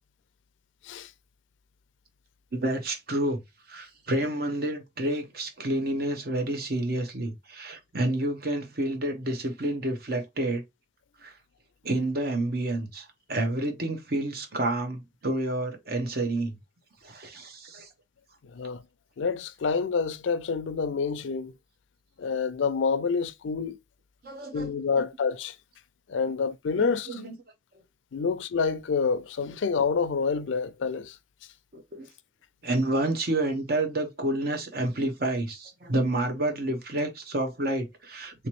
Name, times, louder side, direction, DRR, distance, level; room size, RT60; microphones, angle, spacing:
voice 1, 2.5-3.4 3.7-10.6 11.2-11.3 11.8-16.6 17.0-17.9 24.2-25.0 26.8-27.3 28.2-28.3 31.7-32.1 32.6-38.5, right 1 dB, 55° right, 0.8 m, -29 dB
voice 2, 18.5-18.8 19.2-21.5 22.2-23.8 24.5-25.5 26.1-27.2 28.1-31.2, left 5 dB, 90° left, 0.4 m, -27 dB
3.4 x 2.9 x 3.0 m
head